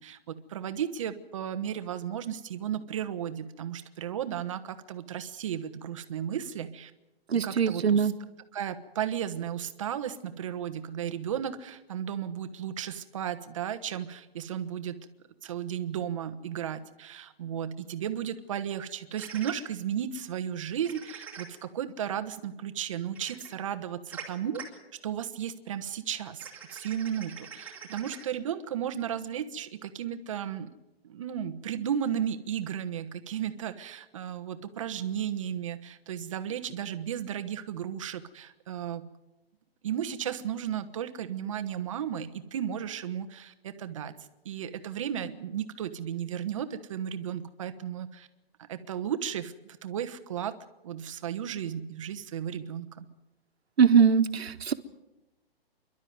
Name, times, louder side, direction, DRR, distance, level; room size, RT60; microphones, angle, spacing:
voice 1, 0.0-6.9 7.3-8.1 8.5-15.0 15.4-24.6 25.0-26.4 26.7-30.7 31.0-39.1 39.8-44.2 44.4-48.3 48.7-49.5 49.8-50.5 50.8-53.1, right 9 dB, 30° right, 10 dB, 1.1 m, -34 dB
voice 2, 7.3-8.1 53.8-54.7, right 6 dB, 80° right, 10 dB, 1.5 m, -22 dB
sound 1, 19.2-19.5 20.8-21.4 23.1-23.5 24.1-24.2 24.5-24.6 26.4-28.2, right 7 dB, 5° right, 2.3 m, -43 dB
26.5 x 12.0 x 9.4 m, 0.97 s
hypercardioid pair, 170°, 31 cm